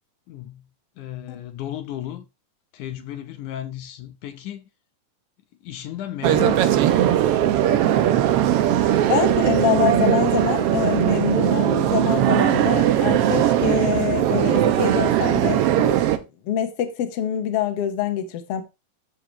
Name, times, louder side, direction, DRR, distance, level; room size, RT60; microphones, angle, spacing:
voice 1, 0.3-0.7 1.0-2.3 2.7-4.7 5.6-6.8, left 12 dB, 75° left, 2.4 m, -34 dB
sound 1, 6.2-16.2, right 11 dB, 75° right, 1.4 m, -19 dB
voice 2, 8.8-18.6, left 10 dB, 60° left, 2.0 m, -25 dB
13.5 x 7.0 x 3.1 m
omnidirectional pair, 3.6 m